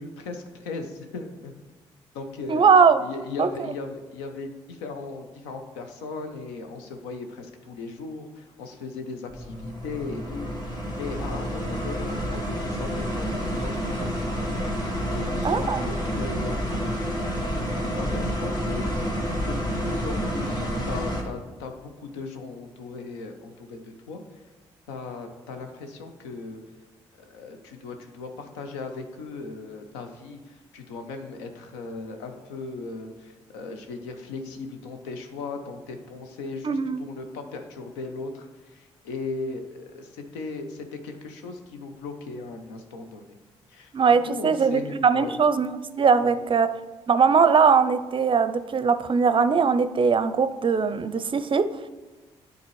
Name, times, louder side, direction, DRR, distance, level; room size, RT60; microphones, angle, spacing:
voice 1, 0.0-1.5 2.1-2.7 3.0-14.3 14.7-16.6 17.8-19.1 19.4-24.2 24.9-26.6 27.2-43.3 43.7-43.9 44.2-45.4 46.2-46.4, left 3 dB, 85° left, 6 dB, 0.6 m, -37 dB
voice 2, 2.5-3.0 3.4-3.5 15.4-15.9 36.6-37.0 43.9-46.7 47.1-51.6, right 5 dB, 40° right, 12 dB, 0.5 m, -20 dB
sound 1, 9.3-21.2, equal, 30° left, 2.0 m, -29 dB
10.5 x 3.9 x 3.1 m, 1.2 s
hypercardioid pair, 45°, 14 cm